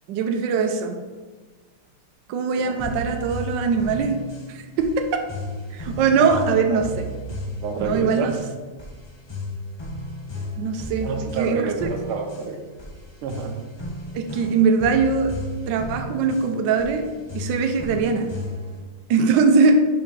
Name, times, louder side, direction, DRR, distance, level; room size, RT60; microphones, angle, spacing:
voice 1, 0.1-1.0 2.3-4.2 4.5-5.2 5.7-7.1 7.8-8.4 10.6-11.9 14.1-15.3 15.7-17.1 17.3-18.3 19.1-19.8, right 5 dB, 70° right, 5 dB, 1.2 m, -21 dB
voice 2, 2.6-3.0 6.1-6.9 7.6-8.3 11.0-12.6 13.2-13.6, right 5 dB, 85° right, 4 dB, 1.7 m, -29 dB
sound 1, 2.8-18.8, left 1 dB, 30° left, 0.4 m, -34 dB
5.9 x 4.8 x 5.3 m, 1.3 s
omnidirectional pair, 2.3 m